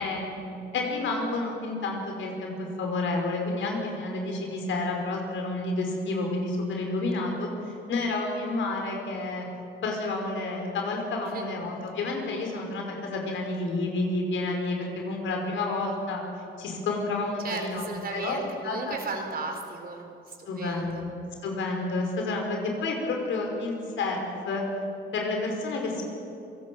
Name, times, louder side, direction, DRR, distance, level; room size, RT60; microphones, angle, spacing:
voice 1, 0.0-9.5 9.8-16.2 16.6-19.0 20.5-21.1 21.4-24.6 25.1-26.0, left 2 dB, 75° left, 1 dB, 5.5 m, -30 dB
voice 2, 17.4-21.0, right 3 dB, 50° right, 3 dB, 4.3 m, -35 dB
27.0 x 18.0 x 7.8 m, 2.9 s
cardioid pair, 90°, 20 cm